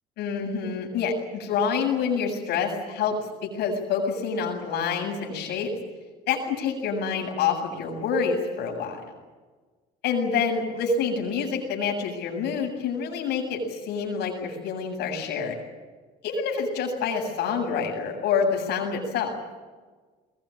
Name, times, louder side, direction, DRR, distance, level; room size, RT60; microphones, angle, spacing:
voice 1, 0.2-3.2 3.4-5.7 6.3-9.1 10.0-15.6 16.2-19.4, left 5 dB, 80° left, 1 dB, 7.8 m, -27 dB
22.5 x 21.5 x 10.0 m, 1.4 s
cardioid pair, 110°, 17 cm